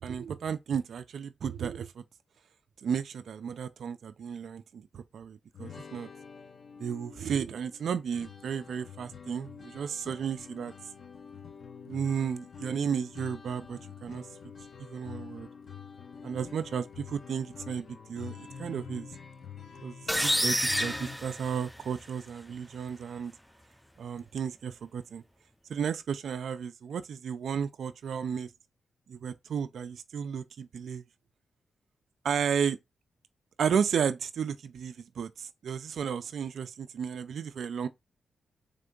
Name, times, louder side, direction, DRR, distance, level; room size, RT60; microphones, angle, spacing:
voice 1, 0.0-2.0 2.8-6.1 6.8-10.7 11.9-14.3 14.8-15.5 16.2-19.1 19.8-23.3 24.0-25.2 25.7-28.5 29.1-31.0 32.2-32.8 33.6-37.9, right 7 dB, 75° right, 0.4 m, -33 dB
sound 1, 5.5-21.2, left 6 dB, 65° left, 0.8 m, -47 dB
sound 2, 20.1-22.0, equal, ahead, 0.4 m, -29 dB
3.6 x 3.4 x 3.8 m
cardioid pair, 65°, 0 cm